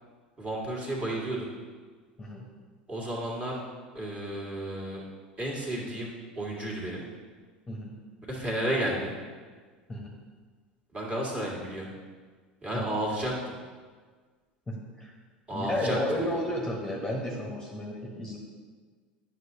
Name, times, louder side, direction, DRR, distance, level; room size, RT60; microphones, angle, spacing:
voice 1, 0.4-1.5 2.9-3.6 3.9-5.0 5.4-7.0 8.3-9.2 10.9-11.9 12.6-13.5 15.5-16.4, right 1 dB, 20° right, -3 dB, 1.9 m, -32 dB
voice 2, 7.7-8.0 9.9-10.1 12.7-12.9 14.7-15.1 15.5-18.4, left 1 dB, 15° left, -2 dB, 1.1 m, -32 dB
9.6 x 5.8 x 2.8 m, 1.5 s
figure-of-eight pair, 75°, 5 cm